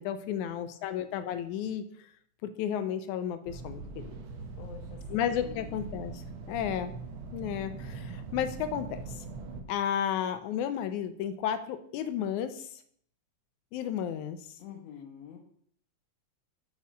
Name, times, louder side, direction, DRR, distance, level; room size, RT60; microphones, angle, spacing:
voice 1, 0.0-1.8 2.4-4.0 5.1-6.1 6.5-6.9 7.3-9.0 9.7-12.5 13.7-14.4, left 9 dB, 85° left, 11 dB, 2.2 m, -32 dB
sound 1, 3.5-9.6, right 4 dB, 70° right, 1.2 m, -41 dB
voice 2, 4.6-5.7 14.6-15.4, left 8 dB, 65° left, 1 dB, 2.0 m, -48 dB
8.4 x 4.7 x 6.3 m, 0.62 s
omnidirectional pair, 3.4 m